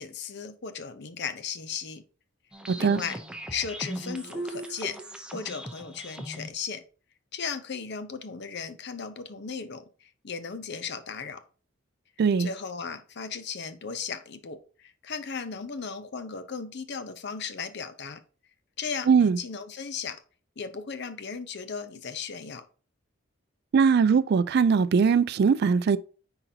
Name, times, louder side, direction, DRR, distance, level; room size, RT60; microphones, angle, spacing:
voice 1, 0.0-2.0 2.8-3.2 3.5-5.0 5.3-6.8 7.3-11.4 12.4-18.2 18.8-20.2 20.6-22.6, left 6 dB, 55° left, 0.7 m, -36 dB
sound 1, 2.5-6.5, right 1 dB, 5° right, 0.7 m, -38 dB
voice 2, 2.7-3.0 12.2-12.5 19.1-19.4 23.7-26.0, right 6 dB, 50° right, 0.3 m, -21 dB
9.8 x 3.9 x 2.8 m
head